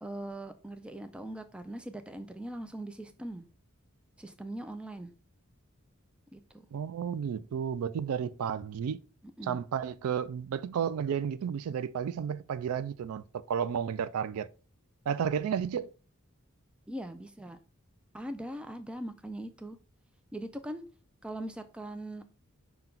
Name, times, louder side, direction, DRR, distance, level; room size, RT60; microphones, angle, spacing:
voice 1, 0.0-3.5 4.2-5.1 6.3-6.7 9.4-9.6 16.9-17.6 18.1-19.8 20.3-20.8 21.2-22.2, right 1 dB, 5° right, 0.3 m, -41 dB
voice 2, 6.7-9.0 9.5-14.5 15.1-15.9, right 7 dB, 80° right, 0.3 m, -32 dB
5.7 x 2.2 x 3.7 m
head